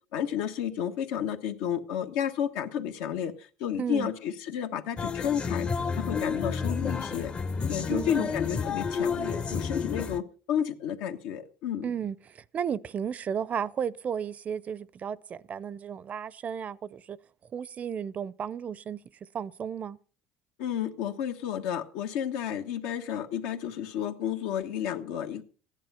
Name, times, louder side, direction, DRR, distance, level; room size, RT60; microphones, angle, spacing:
voice 1, 0.1-5.7 5.9-7.3 7.7-11.8 20.6-25.4, left 9 dB, 80° left, 1.4 m, -31 dB
voice 2, 3.8-4.1 7.9-8.3 11.8-17.2 17.5-19.0 19.3-20.0, right 8 dB, 35° right, 0.5 m, -34 dB
sound 1, 5.0-10.2, left 5 dB, 25° left, 0.7 m, -30 dB
15.0 x 10.5 x 5.6 m
supercardioid pair, 115°, 4 cm